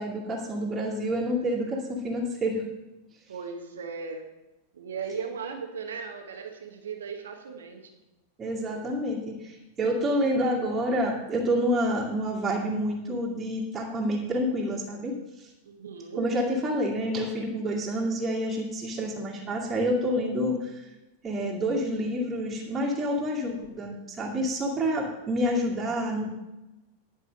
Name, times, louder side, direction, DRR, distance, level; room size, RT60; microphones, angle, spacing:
voice 1, 0.0-2.6 8.4-15.5 16.1-20.9 21.2-26.3, equal, 20° right, -3 dB, 2.3 m, -28 dB
voice 2, 3.3-4.3 4.7-7.9 15.7-16.3, right 5 dB, 65° right, 4 dB, 1.1 m, -37 dB
11.0 x 5.3 x 6.5 m, 1.0 s
figure-of-eight pair, 90°, 0 cm